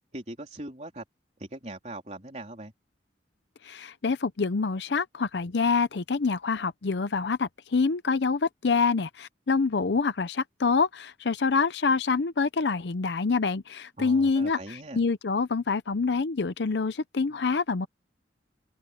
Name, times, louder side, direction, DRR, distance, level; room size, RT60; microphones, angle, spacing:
voice 1, 0.1-1.0 1.4-2.7 14.0-15.0, right 1 dB, 40° right, 3.6 m, -40 dB
voice 2, 3.6-17.9, left 4 dB, 70° left, 0.6 m, -26 dB
open air
head